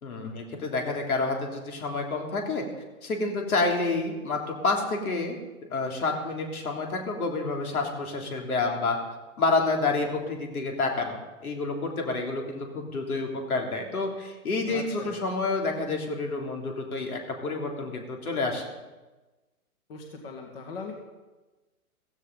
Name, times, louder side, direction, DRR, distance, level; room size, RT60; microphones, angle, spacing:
voice 1, 0.0-2.6 3.0-5.4 5.7-9.0 9.4-18.7, left 3 dB, 75° left, 1 dB, 3.4 m, -29 dB
voice 2, 14.7-15.1 19.9-20.9, left 4 dB, 40° left, 1 dB, 2.2 m, -40 dB
15.5 x 15.0 x 4.0 m, 1.2 s
hypercardioid pair, 155°, 44 cm